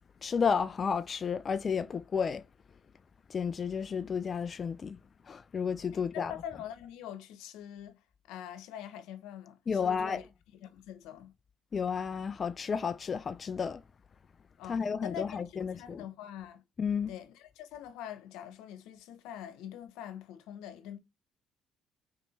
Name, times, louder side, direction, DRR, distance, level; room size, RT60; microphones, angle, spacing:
voice 1, 0.2-2.4 3.3-5.0 5.3-6.3 9.7-10.2 11.7-13.8 14.7-16.0 16.8-17.1, left 6 dB, 40° left, 0.4 m, -32 dB
voice 2, 5.9-8.0 8.3-10.2 10.5-11.3 14.6-16.6 17.1-21.0, left 10 dB, 90° left, 1.1 m, -44 dB
4.9 x 4.5 x 4.3 m
cardioid pair, 95°, 0 cm